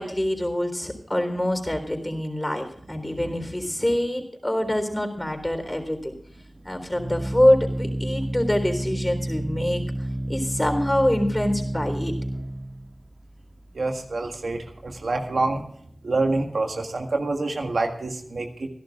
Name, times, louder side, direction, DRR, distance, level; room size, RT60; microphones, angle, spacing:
voice 1, 0.0-6.1 6.6-12.1, left 1 dB, 20° left, 5 dB, 3.8 m, -25 dB
Organ, 5.2-15.7, right 1 dB, 40° right, 2.2 m, -31 dB
voice 2, 13.7-15.6 16.0-18.7, right 2 dB, 90° right, 4 dB, 1.7 m, -26 dB
26.0 x 11.0 x 2.4 m, 0.64 s
wide cardioid pair, 45°, 0 cm